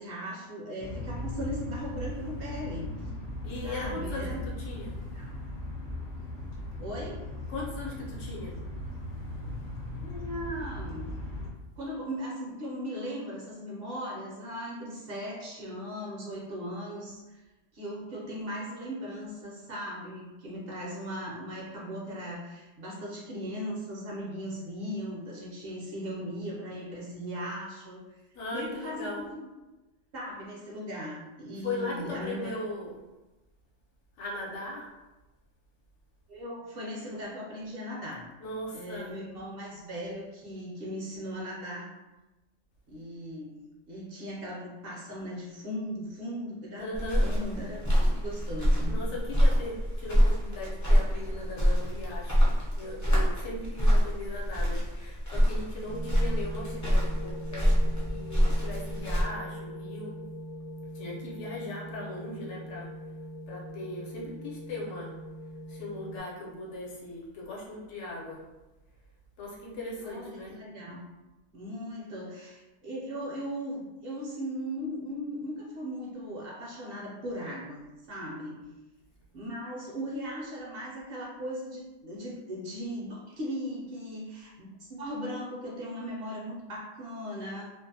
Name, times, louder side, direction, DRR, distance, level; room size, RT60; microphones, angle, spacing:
voice 1, 0.0-3.1 3.6-4.4 5.1-5.3 6.8-7.3 10.0-11.1 11.8-17.4 17.7-28.2 28.5-29.5 30.1-32.6 36.3-38.3 38.7-41.9 42.9-43.6 43.9-49.0 70.0-71.1 71.5-78.6 79.3-87.7, equal, 60° right, -4 dB, 0.7 m, -38 dB
sound 1, 0.8-11.5, left 1 dB, 50° left, 0.7 m, -38 dB
voice 2, 3.4-5.0 7.5-8.5 28.3-29.2 31.6-33.0 34.2-34.9 38.4-39.1 46.8-47.3 48.9-52.4 52.7-60.1 60.9-62.9 63.5-65.1 65.7-68.4 69.4-70.6, left 2 dB, 70° left, -3 dB, 1.0 m, -38 dB
sound 2, 46.9-59.2, equal, 30° left, 0.3 m, -26 dB
sound 3, 55.9-66.2, equal, 80° right, 0.9 m, -41 dB
2.5 x 2.0 x 2.6 m, 1.1 s
omnidirectional pair, 1.3 m